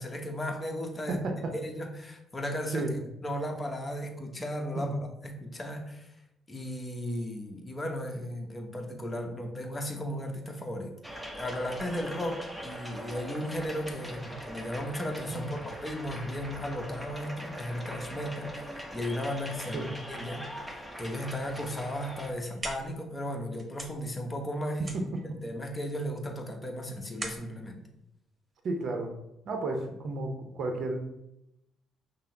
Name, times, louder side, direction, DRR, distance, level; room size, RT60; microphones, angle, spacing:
voice 1, 0.0-1.2 1.6-2.9 3.2-4.9 5.2-6.1 6.5-10.9 11.3-25.0 25.4-27.8, equal, 25° left, 3 dB, 0.9 m, -35 dB
voice 2, 1.1-1.5 2.7-3.0 4.7-4.9 15.3-15.6 19.7-19.9 24.9-25.2 28.6-29.1 29.4-31.1, right 2 dB, 60° right, 4 dB, 0.6 m, -32 dB
sound 1, 11.0-22.3, equal, ahead, 0.8 m, -41 dB
sound 2, 22.2-29.0, right 2 dB, 30° right, 1.0 m, -44 dB
5.6 x 2.0 x 3.8 m, 0.84 s
hypercardioid pair, 50°, 0 cm